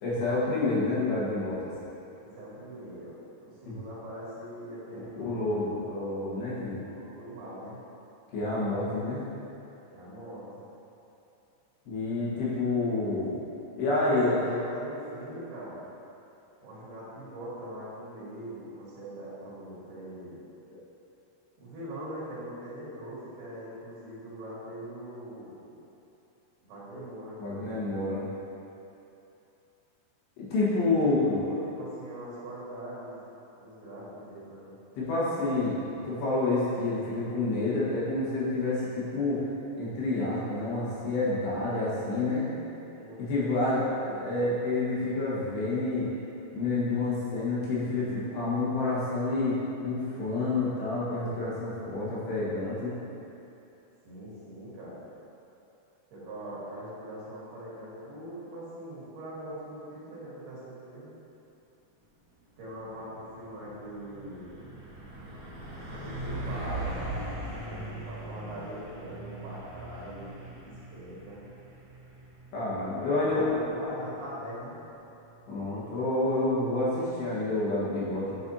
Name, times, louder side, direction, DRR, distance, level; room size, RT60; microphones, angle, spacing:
voice 1, 0.0-1.6 3.7-3.8 5.3-6.8 8.3-9.2 11.9-13.4 13.8-14.4 27.4-28.3 30.4-31.4 35.0-39.4 39.8-42.5 43.2-43.9 44.2-46.1 46.5-49.6 49.8-53.0 72.5-73.4 75.5-78.3, left 2 dB, 75° left, -8 dB, 3.7 m, -28 dB
voice 2, 2.2-5.7 6.8-7.8 9.9-10.7 13.8-15.9 16.6-20.4 21.6-25.8 26.6-27.4 30.9-33.2 33.6-34.8 42.9-44.3 54.1-55.0 56.1-61.1 62.6-64.7 65.9-71.5 73.0-74.8, right 1 dB, 70° right, -8 dB, 3.5 m, -42 dB
Truck, 62.6-62.8 63.2-75.8, right 2 dB, 55° right, 1.9 m, -41 dB
9.4 x 6.3 x 2.8 m, 2.9 s
omnidirectional pair, 4.9 m